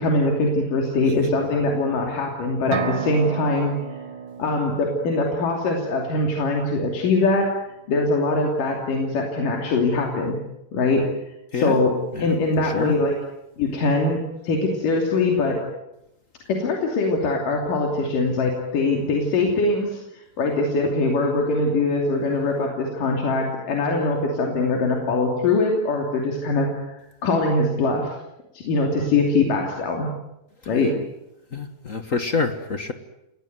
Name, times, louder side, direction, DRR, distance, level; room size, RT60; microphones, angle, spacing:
voice 1, 0.0-3.7 4.4-7.5 7.9-10.4 10.7-11.0 11.5-11.9 12.2-13.2 13.6-15.6 16.5-20.0 20.4-28.2 28.5-30.1 30.7-30.9, left 2 dB, 85° left, 1 dB, 4.6 m, -22 dB
sound 1, 2.7-6.5, right 7 dB, 75° right, 3.3 m, -33 dB
voice 2, 12.1-12.9 31.5-32.9, left 4 dB, 50° left, 8 dB, 1.0 m, -27 dB
28.5 x 20.0 x 9.4 m, 0.90 s
omnidirectional pair, 3.7 m